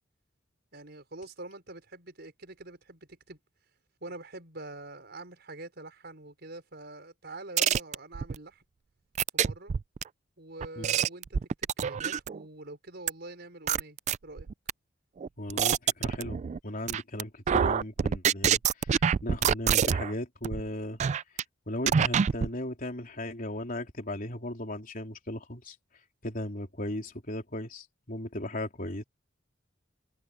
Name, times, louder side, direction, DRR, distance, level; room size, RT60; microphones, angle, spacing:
voice 1, 0.7-3.4 4.0-8.6 9.3-9.7 10.4-14.5, right 2 dB, 60° right, 5.7 m, -45 dB
sound 1, 7.6-8.4 9.2-10.0 10.6-12.4 13.1-13.2 13.7-14.7 15.2-16.6 16.9-17.2 17.5-20.1 20.4-20.6 21.0-21.4 21.9-22.5, right 7 dB, 35° right, 0.3 m, -26 dB
voice 2, 15.4-18.6 19.2-21.0 21.7-25.8 26.2-29.0, left 1 dB, 45° left, 3.6 m, -36 dB
head